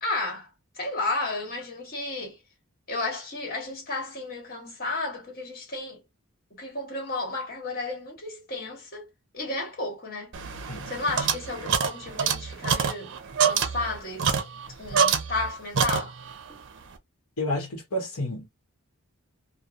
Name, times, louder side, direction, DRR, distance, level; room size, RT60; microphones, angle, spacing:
voice 1, 0.0-0.5 0.7-2.4 2.9-6.0 6.5-9.1 9.3-10.3 10.9-14.3 14.8-16.2 16.5-16.6, left 2 dB, 40° left, 1.4 m, -33 dB
sound 1, 10.3-15.5 15.7-16.4, right 7 dB, 55° right, 0.6 m, -26 dB
voice 2, 17.4-18.5, left 1 dB, 85° left, 1.1 m, -30 dB
3.0 x 2.3 x 2.4 m
head